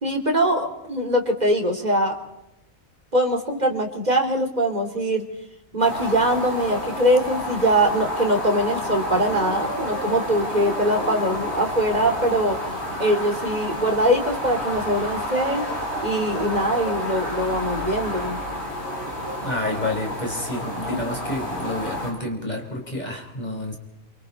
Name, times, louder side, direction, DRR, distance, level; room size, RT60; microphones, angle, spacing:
voice 1, 0.0-2.1 3.1-5.2 5.7-12.6 13.0-15.6 16.0-18.4 20.9-21.0, right 1 dB, 30° right, 3 dB, 3.2 m, -22 dB
sound 1, 5.8-22.1, left 1 dB, 50° left, 7.4 m, -30 dB
voice 2, 19.4-23.8, left 1 dB, 30° left, 1 dB, 5.0 m, -29 dB
28.5 x 25.0 x 4.2 m, 0.85 s
omnidirectional pair, 1.4 m